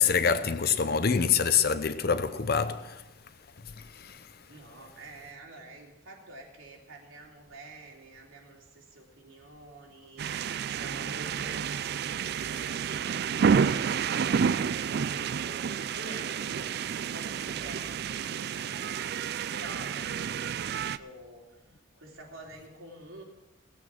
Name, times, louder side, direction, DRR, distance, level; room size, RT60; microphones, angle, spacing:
voice 1, 0.0-3.0 4.0-4.2, left 6 dB, 50° left, 0.7 m, -25 dB
voice 2, 4.5-10.3 10.7-15.7 15.9-19.1 19.5-21.6 22.0-23.2, right 2 dB, 85° right, 3.1 m, -47 dB
sound 1, 10.2-21.0, right 7 dB, 50° right, 0.3 m, -30 dB
17.0 x 8.5 x 6.0 m
head